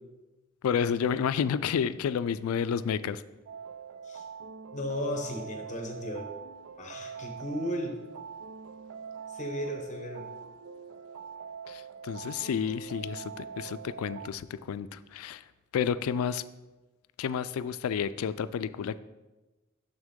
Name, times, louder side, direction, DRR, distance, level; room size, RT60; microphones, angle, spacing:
voice 1, 0.6-3.2 11.7-15.4 15.7-16.4 17.2-19.0, left 7 dB, 85° left, 15 dB, 0.3 m, -30 dB
sound 1, 3.5-14.3, right 6 dB, 70° right, 0.4 m, -43 dB
voice 2, 4.7-6.3 6.8-8.0 9.3-10.3, equal, 35° left, 4 dB, 1.0 m, -35 dB
6.6 x 6.2 x 3.7 m, 1.1 s
head